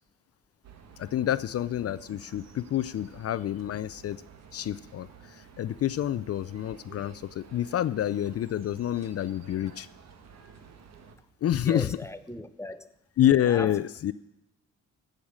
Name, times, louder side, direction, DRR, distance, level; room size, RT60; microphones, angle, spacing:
sound 1, 0.6-11.2, right 6 dB, 60° right, 1.8 m, -52 dB
voice 1, 1.0-4.2 4.5-9.9 11.4-11.9 13.2-14.1, left 11 dB, 55° left, 16 dB, 0.5 m, -28 dB
voice 2, 11.5-12.9 13.4-13.8, left 1 dB, 10° left, 11 dB, 1.0 m, -38 dB
15.5 x 6.6 x 8.7 m, 0.85 s
cardioid pair, 90°, 30 cm